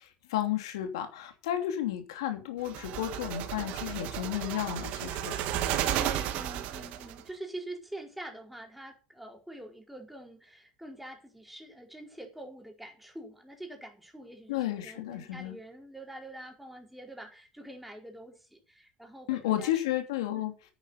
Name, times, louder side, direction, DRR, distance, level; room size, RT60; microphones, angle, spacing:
voice 1, 0.0-5.3 14.5-15.6 19.3-20.5, left 12 dB, 85° left, 3.0 m, -32 dB
sound 1, 2.6-7.2, right 11 dB, 65° right, 2.0 m, -33 dB
voice 2, 5.9-19.8 20.4-20.5, right 1 dB, 5° right, 4.6 m, -45 dB
9.9 x 9.2 x 6.7 m
supercardioid pair, 85°, 3 cm